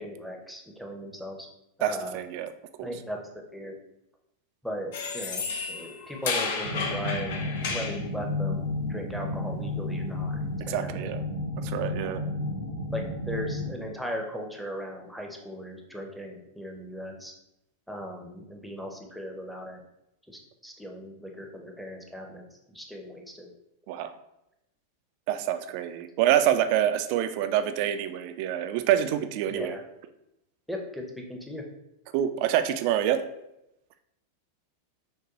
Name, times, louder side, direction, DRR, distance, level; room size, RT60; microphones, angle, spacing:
voice 1, 0.0-1.4 1.8-2.2 2.8-3.2 3.5-3.7 4.6-5.4 5.7-7.3 7.7-10.4 10.7-11.2 12.0-12.2 12.9-17.3 17.9-19.8 20.3-22.4 22.7-23.5 29.5-29.8 30.7-31.6, equal, ahead, 1 dB, 0.7 m, -37 dB
voice 2, 1.8-2.5 2.8-2.9 10.7-11.2 11.6-12.2 23.9-24.1 25.3-29.8 32.1-33.2, right 11 dB, 45° right, 10 dB, 0.3 m, -26 dB
sound 1, 4.9-8.0, left 4 dB, 55° left, 0.5 m, -32 dB
sound 2, 6.6-13.7, left 2 dB, 75° right, 0.7 m, -32 dB
6.1 x 2.2 x 3.0 m, 0.86 s
figure-of-eight pair, 90°, 0 cm